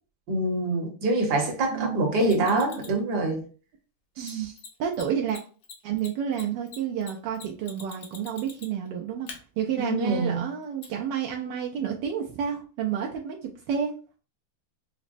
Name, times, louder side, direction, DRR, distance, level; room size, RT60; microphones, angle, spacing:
voice 1, 0.3-3.4 4.2-4.5 9.8-10.4, right 2 dB, 60° right, 1.5 m, -25 dB
voice 2, 1.7-2.4 4.2-4.5 4.8-5.4 5.8-9.3 9.6-13.9, right 8 dB, 75° right, 1.1 m, -30 dB
Mechanisms, 2.2-3.0 4.2-4.3 4.6-4.7 4.9-5.0 5.3-8.9 9.3-9.4 10.8-10.9, left 6 dB, 75° left, 1.6 m, -43 dB
5.9 x 2.1 x 2.5 m
omnidirectional pair, 2.2 m